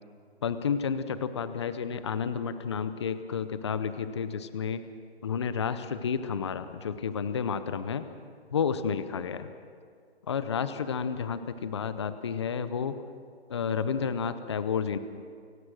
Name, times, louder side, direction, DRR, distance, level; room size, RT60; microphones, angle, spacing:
voice 1, 0.4-4.8 5.2-8.0 8.5-9.5 10.3-13.0 13.5-15.0, left 6 dB, 25° left, 12 dB, 0.7 m, -31 dB
29.5 x 17.0 x 6.3 m, 2.1 s
hypercardioid pair, 165°, 32 cm